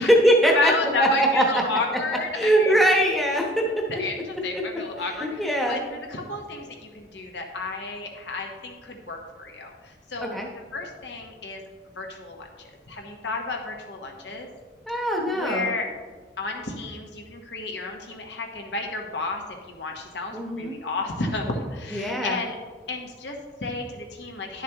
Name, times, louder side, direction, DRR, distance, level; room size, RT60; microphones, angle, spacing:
voice 1, 0.0-0.7 1.0-1.6 1.9-2.0 2.3-3.8 4.5-4.6 5.1-5.8 10.2-10.5 14.9-15.7 20.3-20.7 21.9-22.4, right 1 dB, ahead, -1 dB, 0.9 m, -21 dB
voice 2, 0.5-2.7 3.6-10.4 10.7-11.6 12.0-12.5 12.9-14.5 15.3-15.9 16.4-22.5 22.9-24.6, left 3 dB, 80° left, 2 dB, 1.2 m, -32 dB
10.5 x 7.2 x 3.0 m, 1.4 s
head